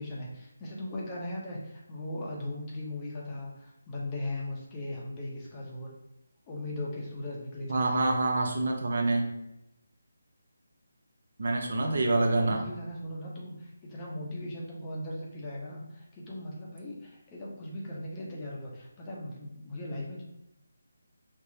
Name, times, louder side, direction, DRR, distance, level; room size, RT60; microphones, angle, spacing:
voice 1, 0.0-5.9 6.5-8.1 12.4-20.2, left 1 dB, 20° left, -4 dB, 0.7 m, -38 dB
voice 2, 7.7-9.3 11.4-12.6, right 2 dB, 60° right, 2 dB, 0.6 m, -26 dB
4.3 x 2.0 x 2.6 m, 0.87 s
figure-of-eight pair, 160°, 0 cm